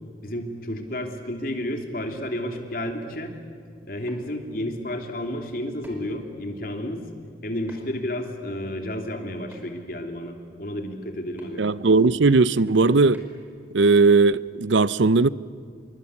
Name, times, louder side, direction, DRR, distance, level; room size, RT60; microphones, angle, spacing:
voice 1, 0.2-3.3 3.9-7.0 7.4-11.6, left 1 dB, 50° left, 3.1 m, -31 dB
sound 1, 4.1-4.2 5.8-6.2 7.7-8.0 9.5-9.9 11.4-11.5 13.1-13.4, left 1 dB, 10° right, 5.1 m, -47 dB
voice 2, 11.6-13.2 13.7-15.3, right 3 dB, 90° right, 0.6 m, -18 dB
27.5 x 23.0 x 8.4 m
head